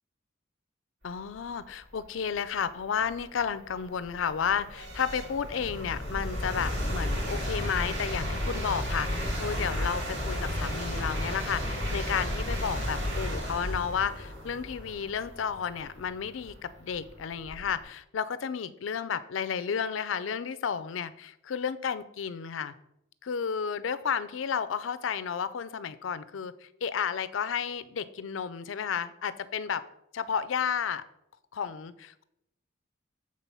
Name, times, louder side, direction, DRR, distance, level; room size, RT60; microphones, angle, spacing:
voice 1, 1.0-22.7 23.2-29.8 30.1-31.0 31.5-32.2, left 7 dB, 85° left, 14 dB, 0.5 m, -32 dB
sound 1, 2.3-2.4 3.0-17.8, equal, 65° right, 2.5 m, -33 dB
7.4 x 3.8 x 5.5 m, 0.80 s
head